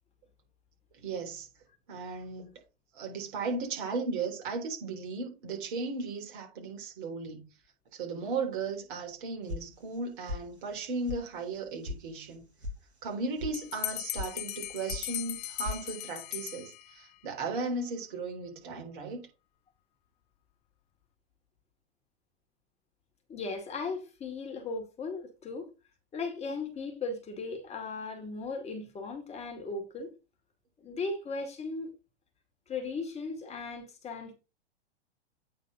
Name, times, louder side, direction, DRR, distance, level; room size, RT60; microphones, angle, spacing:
voice 1, 1.0-1.5 1.9-2.5 2.9-7.5 7.9-12.4 13.0-19.3, right 4 dB, 50° right, 3.6 m, -36 dB
sound 1, 9.5-10.0 10.3-10.8 11.0-11.2 11.5-12.0 12.3-12.7 13.0-13.5 13.8-14.3 14.6-15.1 15.3-15.8, left 2 dB, 90° right, 1.4 m, -38 dB
Bell, 13.5-17.2, left 16 dB, 40° left, 0.4 m, -38 dB
voice 2, 23.3-25.7 26.1-30.1 30.8-31.9 32.7-34.3, left 3 dB, 20° left, 1.9 m, -37 dB
8.7 x 4.0 x 5.3 m
figure-of-eight pair, 100°, 32 cm